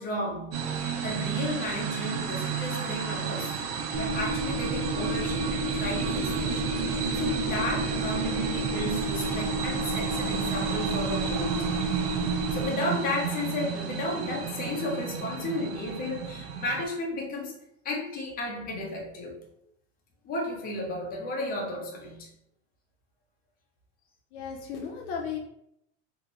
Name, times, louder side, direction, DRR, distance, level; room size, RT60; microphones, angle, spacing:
voice 1, 0.0-3.6 4.0-11.8 12.2-17.6 17.8-19.4 20.2-22.3, left 1 dB, 25° left, -1 dB, 0.7 m, -33 dB
sound 1, 0.5-16.8, right 7 dB, 85° right, 0.6 m, -32 dB
sound 2, 3.9-12.7, right 2 dB, 35° right, 0.4 m, -31 dB
voice 2, 24.3-25.4, left 6 dB, 60° left, 1 dB, 0.5 m, -35 dB
2.7 x 2.2 x 2.9 m, 0.78 s
supercardioid pair, 140°, 38 cm